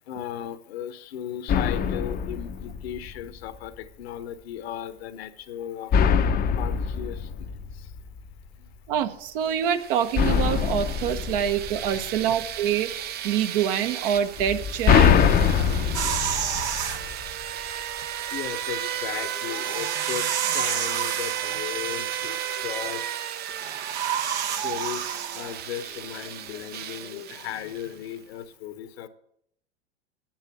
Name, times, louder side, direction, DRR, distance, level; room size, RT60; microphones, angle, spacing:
voice 1, 0.1-6.0 6.5-7.9 8.5-8.7 11.2-11.3 11.9-12.3 15.3-15.5 18.3-23.4 24.0-29.1, left 10 dB, 65° left, 11 dB, 1.2 m, -37 dB
sound 1, 1.5-3.4 5.9-8.3 10.2-12.4 14.4-17.4, left 7 dB, 25° left, 0.8 m, -23 dB
voice 2, 8.9-12.9 13.2-15.2, right 9 dB, 55° right, 9 dB, 1.2 m, -25 dB
sound 2, 9.5-28.1, right 11 dB, 30° right, 0.6 m, -34 dB
sound 3, 15.9-17.0 19.5-21.6 23.5-25.5, right 8 dB, 70° right, 1.6 m, -29 dB
10.0 x 9.0 x 6.7 m, 0.70 s
hypercardioid pair, 100°, 34 cm